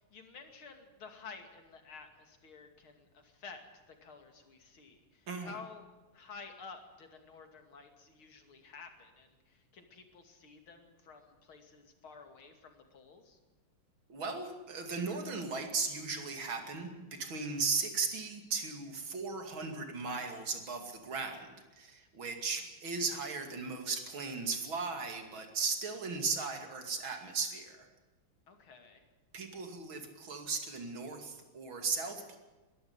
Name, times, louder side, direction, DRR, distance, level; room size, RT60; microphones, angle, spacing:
voice 1, 0.0-3.6 3.9-5.9 6.1-13.4 28.5-29.1, left 5 dB, 80° left, 6 dB, 3.3 m, -52 dB
voice 2, 14.1-27.9 29.3-32.4, right 4 dB, 70° right, 5 dB, 3.3 m, -37 dB
22.5 x 13.0 x 9.7 m, 1.2 s
omnidirectional pair, 2.2 m